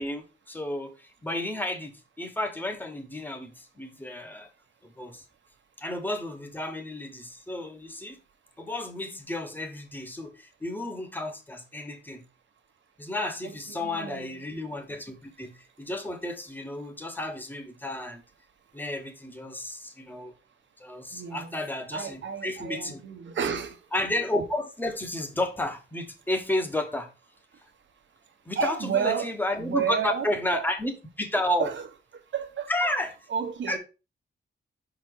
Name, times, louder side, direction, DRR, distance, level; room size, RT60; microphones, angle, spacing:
voice 1, 0.0-4.5 4.8-5.2 5.8-8.2 8.6-12.2 13.0-18.2 18.7-20.3 20.8-23.0 23.9-27.1 28.5-31.7 32.7-33.1 33.7-33.8, left 1 dB, 10° left, 0.9 m, -32 dB
voice 2, 13.7-14.3 21.1-21.5 21.9-23.7 28.6-29.3 29.6-30.3 30.5-30.6 31.6-31.7 32.3-32.9 33.3-33.8, right 7 dB, 75° right, 1.1 m, -30 dB
5.8 x 4.0 x 4.5 m
wide cardioid pair, 175°, 19 cm